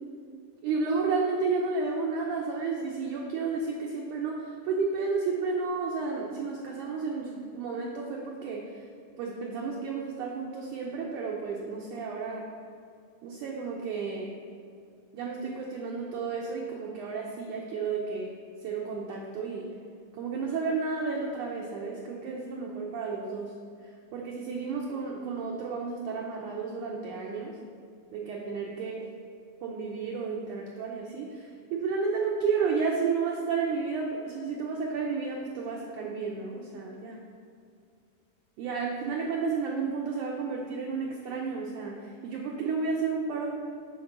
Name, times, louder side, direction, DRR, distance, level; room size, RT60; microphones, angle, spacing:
voice 1, 0.6-8.7 9.2-12.5 13.2-14.3 15.1-18.3 18.6-19.7 20.2-23.5 24.1-27.5 28.1-29.0 29.6-37.2 38.6-43.5, right 4 dB, 80° right, -2 dB, 1.8 m, -32 dB
8.2 x 4.6 x 6.7 m, 2.4 s
omnidirectional pair, 4.4 m